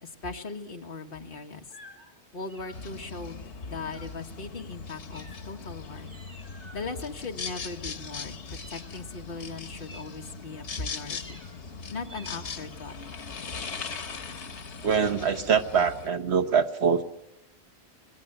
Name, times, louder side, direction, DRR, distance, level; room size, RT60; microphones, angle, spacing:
voice 1, 0.0-1.7 2.3-6.1 6.7-11.4 11.9-13.0, left 3 dB, 55° left, 3 dB, 1.7 m, -39 dB
sound 1, 1.7-2.1 2.4-3.1 3.9-4.3 5.1-5.7 6.0-6.9 7.4-8.2 8.5-9.2 9.8-10.7 11.1-11.6 12.0-12.8 13.6-14.5, equal, 25° right, 4.9 m, -52 dB
sound 2, 2.7-16.1, left 5 dB, 90° left, 1.4 m, -40 dB
voice 2, 14.8-17.0, right 6 dB, 70° right, 8 dB, 1.4 m, -24 dB
26.5 x 19.5 x 7.9 m, 0.88 s
omnidirectional pair, 1.1 m